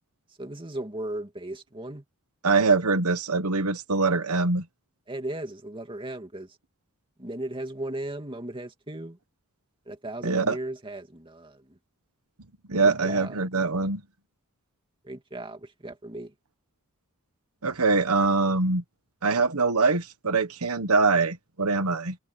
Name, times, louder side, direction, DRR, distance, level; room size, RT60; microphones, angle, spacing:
voice 1, 0.4-2.0 5.1-6.6 7.2-9.2 9.9-11.8 12.8-13.4 15.0-16.3, right 1 dB, 25° right, 2.6 m, -36 dB
voice 2, 2.4-4.6 10.2-10.6 12.7-14.0 17.6-18.8 19.2-22.1, right 3 dB, 85° right, 1.4 m, -23 dB
head